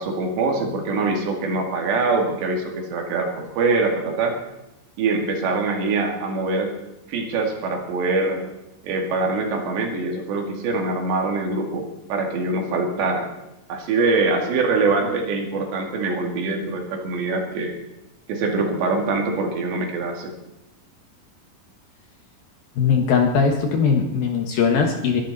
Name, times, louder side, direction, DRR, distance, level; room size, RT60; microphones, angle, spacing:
voice 1, 0.0-4.4 5.0-6.7 7.1-8.4 8.8-13.3 13.7-17.7 18.3-20.3, right 3 dB, 70° right, 2 dB, 4.2 m, -23 dB
voice 2, 22.8-25.2, left 6 dB, 60° left, 3 dB, 2.8 m, -20 dB
22.5 x 12.0 x 4.2 m, 0.93 s
omnidirectional pair, 5.4 m